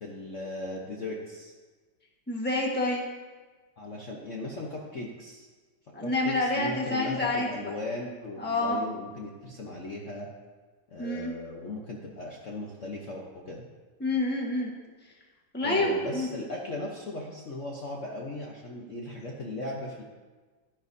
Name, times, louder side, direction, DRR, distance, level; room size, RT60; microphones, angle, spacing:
voice 1, 0.0-1.5 3.8-5.5 6.0-10.3 10.9-13.6 15.6-20.0, left 2 dB, 50° left, -2 dB, 1.1 m, -37 dB
voice 2, 2.3-3.0 5.9-7.7 8.4-8.8 11.0-11.3 14.0-14.7 15.5-16.3, left 2 dB, 5° left, -2 dB, 1.1 m, -28 dB
13.0 x 10.0 x 2.7 m, 1.4 s
omnidirectional pair, 2.1 m